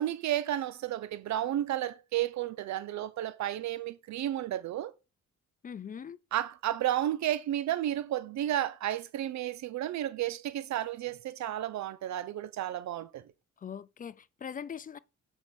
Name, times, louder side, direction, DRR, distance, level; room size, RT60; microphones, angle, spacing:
voice 1, 0.0-4.9 6.3-13.2, right 12 dB, 65° right, 0.5 m, -32 dB
voice 2, 5.6-6.2 13.6-15.0, left 7 dB, 30° left, 0.4 m, -41 dB
7.7 x 5.5 x 4.3 m
cardioid pair, 90°, 30 cm